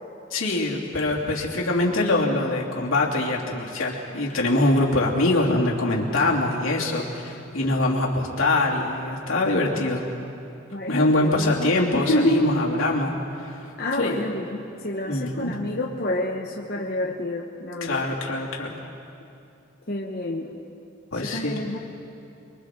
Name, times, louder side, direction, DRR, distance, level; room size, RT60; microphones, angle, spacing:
voice 1, 0.3-10.0 10.9-14.2 15.1-15.5 17.8-18.8 21.1-21.6, left 2 dB, 85° left, -3 dB, 3.0 m, -24 dB
voice 2, 10.7-12.5 13.8-18.1 19.9-20.5 21.1-21.8, left 1 dB, 50° left, -2 dB, 1.2 m, -28 dB
29.5 x 22.5 x 3.9 m, 2.6 s
head